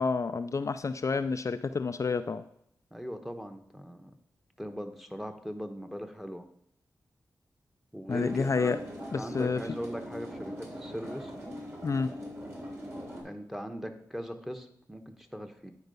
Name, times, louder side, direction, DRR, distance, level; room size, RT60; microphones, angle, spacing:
voice 1, 0.0-2.4 8.1-8.8 9.1-9.6 11.8-12.1, left 4 dB, 50° left, 9 dB, 0.4 m, -29 dB
voice 2, 2.9-4.1 4.6-6.4 7.9-8.7 9.2-11.3 13.2-15.7, equal, 5° right, 6 dB, 1.1 m, -39 dB
sound 1, 8.1-13.2, equal, 40° right, 3.3 m, -41 dB
9.4 x 4.5 x 5.4 m, 0.71 s
cardioid pair, 50°, 7 cm